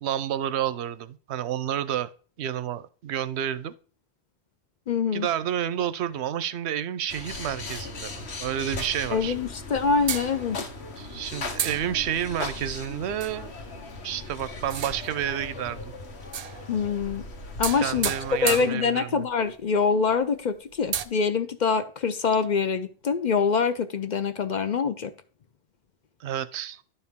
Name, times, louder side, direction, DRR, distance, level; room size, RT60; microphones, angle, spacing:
voice 1, 0.0-2.1 2.4-3.7 5.1-9.4 11.0-13.5 14.0-15.9 17.8-19.3 26.2-26.8, right 10 dB, 85° right, 0.9 m, -30 dB
voice 2, 4.9-5.3 9.1-10.6 16.7-17.2 17.6-18.1 18.4-25.1, left 5 dB, 55° left, 0.6 m, -25 dB
sound 1, 7.1-18.6, left 3 dB, 80° left, 1.4 m, -38 dB
sound 2, 10.1-10.8 11.6-12.4 13.2-13.5 14.6-15.3 16.2-16.9 17.6-19.3 19.8-19.9 20.2-20.3 20.8-21.0, right 8 dB, 55° right, 0.4 m, -33 dB
11.0 x 4.5 x 3.6 m
omnidirectional pair, 1.1 m